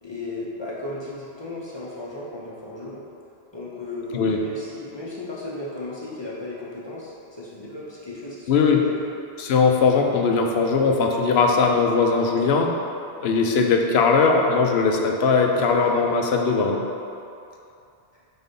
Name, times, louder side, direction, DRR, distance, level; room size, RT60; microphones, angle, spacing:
voice 1, 0.0-3.0 3.5-8.9 15.5-15.8, left 2 dB, 25° left, -6 dB, 0.8 m, -35 dB
voice 2, 8.5-8.8 9.4-12.7 13.2-16.8, left 4 dB, 65° left, 2 dB, 0.8 m, -19 dB
4.4 x 4.1 x 5.3 m, 2.6 s
omnidirectional pair, 1.2 m